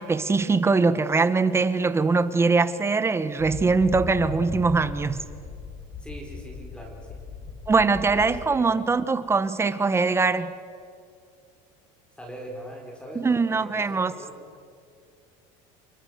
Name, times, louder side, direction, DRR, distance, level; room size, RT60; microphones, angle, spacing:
voice 1, 0.0-5.2 7.7-10.5 13.1-14.1, right 4 dB, 15° right, 1.0 m, -22 dB
sound 1, 3.4-8.4, left 5 dB, 50° left, 4.0 m, -38 dB
voice 2, 6.0-7.2 8.0-8.8 12.2-14.3, equal, 5° left, 4.9 m, -41 dB
29.5 x 24.0 x 6.6 m
cardioid pair, 140°, 17 cm